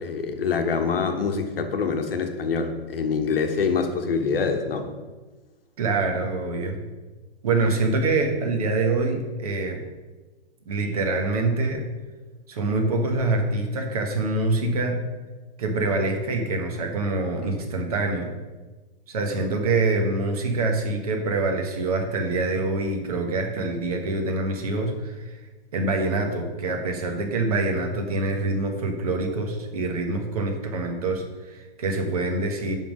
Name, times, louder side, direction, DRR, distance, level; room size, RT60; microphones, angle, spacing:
voice 1, 0.0-4.9, left 5 dB, 60° left, 5 dB, 1.2 m, -25 dB
voice 2, 5.8-6.8 7.4-9.8 10.7-11.8 12.5-15.0 15.6-18.3 19.1-25.4 25.7-32.7, right 3 dB, 35° right, 3 dB, 1.2 m, -25 dB
10.5 x 3.7 x 6.1 m, 1.3 s
hypercardioid pair, 180°, 32 cm